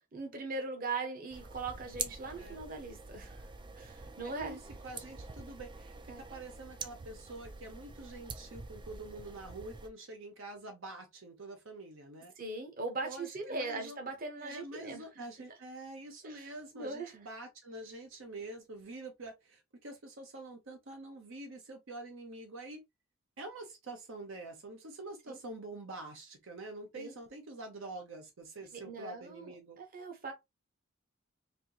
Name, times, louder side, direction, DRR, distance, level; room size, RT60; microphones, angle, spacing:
voice 1, 0.1-3.4 3.8-4.6 6.1-6.2 12.4-15.0 16.2-16.5 16.7-17.1 25.3-25.4 27.0-27.2 28.7-30.3, right 3 dB, 45° right, 1.0 m, -40 dB
sound 1, 1.3-9.9, right 4 dB, 25° right, 0.4 m, -46 dB
voice 2, 4.2-4.6 4.8-12.3 13.0-14.0 14.4-22.8 23.4-29.8, right 2 dB, 70° right, 0.8 m, -46 dB
4.3 x 2.7 x 2.8 m
head